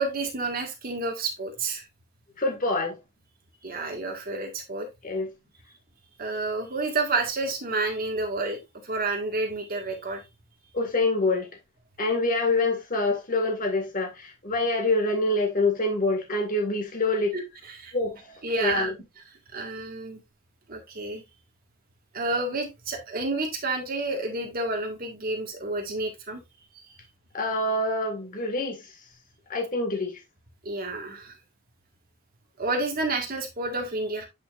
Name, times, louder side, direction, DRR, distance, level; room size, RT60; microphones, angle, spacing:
voice 1, 0.0-1.8 3.6-4.9 6.2-8.6 8.8-10.2 17.3-17.4 17.7-17.9 18.4-18.9 19.5-20.2 20.7-21.2 22.1-26.4 30.6-31.3 32.6-34.3, right 2 dB, 40° right, 1.7 m, -29 dB
voice 2, 2.4-3.0 5.0-5.3 10.7-11.5 12.0-17.4 17.9-18.9 27.3-29.0 29.5-30.2, left 2 dB, 40° left, 1.8 m, -26 dB
8.7 x 5.6 x 2.5 m
head